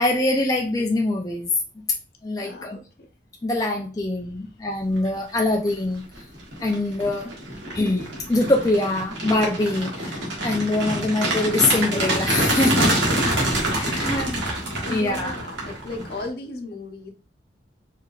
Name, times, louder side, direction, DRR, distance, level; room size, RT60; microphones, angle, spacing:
voice 1, 0.0-1.5 2.2-2.8 3.4-6.0 6.6-7.3 7.7-13.0 13.7-14.4 14.9-15.4, left 2 dB, 20° left, 1 dB, 0.4 m, -24 dB
voice 2, 2.4-2.8 13.0-13.5 14.8-17.1, left 2 dB, 55° left, 4 dB, 0.8 m, -35 dB
sound 1, 5.4-5.7 6.2-16.3, right 1 dB, 80° right, 1.5 m, -26 dB
4.6 x 3.3 x 2.4 m, 0.34 s
head